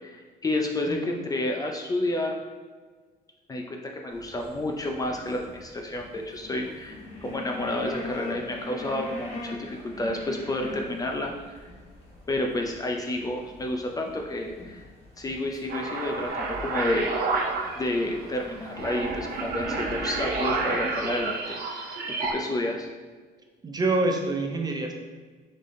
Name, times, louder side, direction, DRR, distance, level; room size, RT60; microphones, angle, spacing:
voice 1, 0.0-2.3 3.5-11.6 12.3-14.9 15.2-17.5 17.8-21.6 22.3-22.9, left 1 dB, 20° left, 2 dB, 0.4 m, -30 dB
voice 2, 0.9-1.2 23.6-24.9, right 2 dB, 25° right, 3 dB, 0.6 m, -26 dB
sound 1, 4.1-21.3, left 2 dB, 35° left, 1.3 m, -43 dB
sound 2, 15.7-22.3, right 3 dB, 65° right, 0.8 m, -30 dB
4.2 x 3.3 x 3.7 m, 1.5 s
cardioid pair, 110°, 17 cm